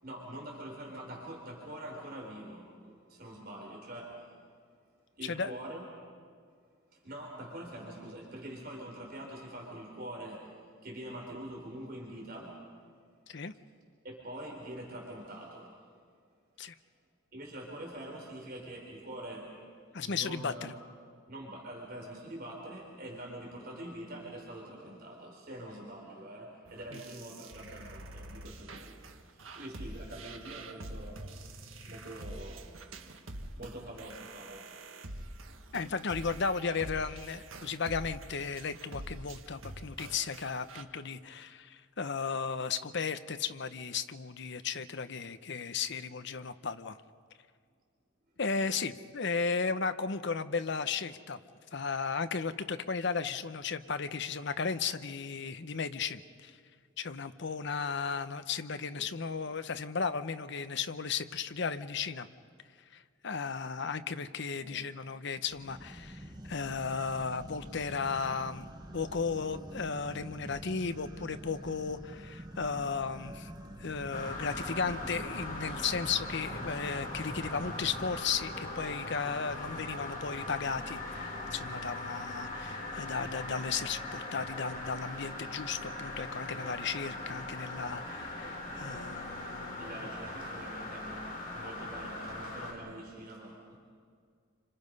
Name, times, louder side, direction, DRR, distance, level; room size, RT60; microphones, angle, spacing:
voice 1, 0.0-4.3 5.2-5.8 6.9-12.6 14.0-15.8 17.3-19.6 19.9-20.7 21.3-29.0 29.3-31.5 31.8-34.7 35.4-35.7 58.9-59.1 64.6-64.7 89.8-93.8, right 1 dB, 50° right, -2 dB, 4.5 m, -45 dB
voice 2, 5.2-5.5 13.3-13.5 16.6-16.7 19.9-20.7 26.9-27.0 35.7-47.0 48.4-51.4 51.7-56.6 57.0-62.3 62.9-73.5 73.8-89.9, left 5 dB, 60° left, 11 dB, 0.9 m, -35 dB
sound 1, 26.7-40.8, right 2 dB, 85° right, 1.6 m, -46 dB
sound 2, 65.5-78.2, right 1 dB, 20° right, 1.4 m, -46 dB
sound 3, 74.1-92.7, left 2 dB, 40° left, 5.4 m, -40 dB
28.5 x 26.0 x 5.4 m, 2.1 s
head